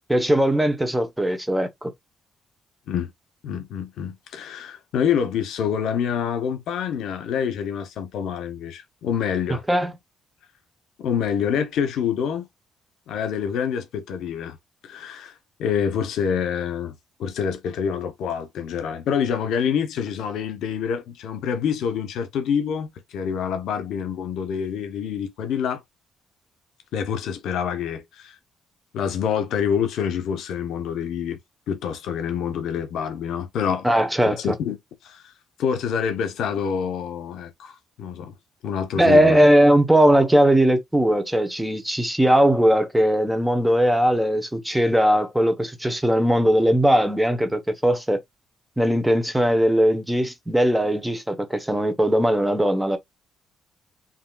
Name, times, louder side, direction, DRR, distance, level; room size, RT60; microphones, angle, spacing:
voice 1, 0.1-1.9 9.7-9.9 33.8-34.5 39.0-48.2 48.8-53.0, equal, 5° right, 1.0 m, -19 dB
voice 2, 3.4-9.6 11.0-12.4 13.1-14.6 14.8-15.3 15.6-16.9 17.2-25.8 26.9-28.3 28.9-31.4 31.7-33.9 34.3-34.8 35.0-35.2 35.6-38.3 38.6-39.4, left 7 dB, 80° left, 0.9 m, -26 dB
5.6 x 2.8 x 2.4 m
cardioid pair, 90°, 0 cm